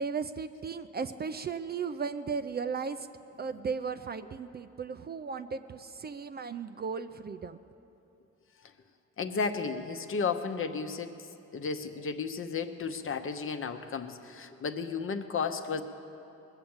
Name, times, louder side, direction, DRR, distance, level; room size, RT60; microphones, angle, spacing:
voice 1, 0.0-3.1 3.4-7.6, right 5 dB, 35° right, 10 dB, 0.5 m, -36 dB
voice 2, 9.2-11.1 11.5-15.8, left 5 dB, 45° left, 7 dB, 0.9 m, -33 dB
21.0 x 7.5 x 7.2 m, 2.8 s
cardioid pair, 90°, 30 cm